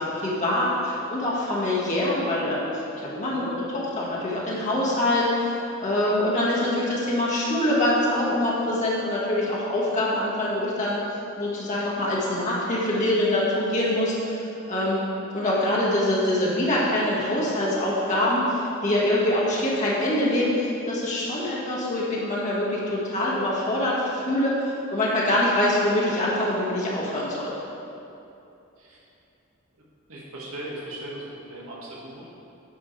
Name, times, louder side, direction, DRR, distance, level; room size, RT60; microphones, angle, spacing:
voice 1, 0.0-2.7 3.0-11.0 11.4-15.0 15.3-27.5, left 1 dB, 35° left, -6 dB, 1.8 m, -24 dB
voice 2, 30.1-32.4, right 1 dB, 85° right, -5 dB, 1.9 m, -38 dB
9.8 x 7.3 x 3.4 m, 2.8 s
head